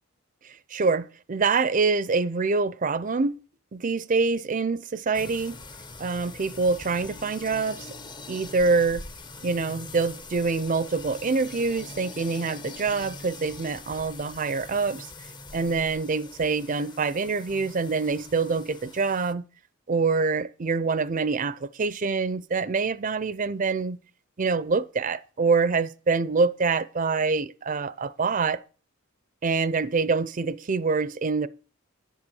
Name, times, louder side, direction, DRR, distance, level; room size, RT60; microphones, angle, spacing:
voice 1, 0.7-3.4 3.7-5.6 6.0-7.9 8.3-9.0 9.4-15.1 15.5-19.4 19.9-24.0 24.4-28.6 29.4-31.5, right 4 dB, 35° right, 0.5 m, -25 dB
sound 1, 5.1-19.3, left 3 dB, 20° left, 0.6 m, -43 dB
10.0 x 8.1 x 6.9 m
head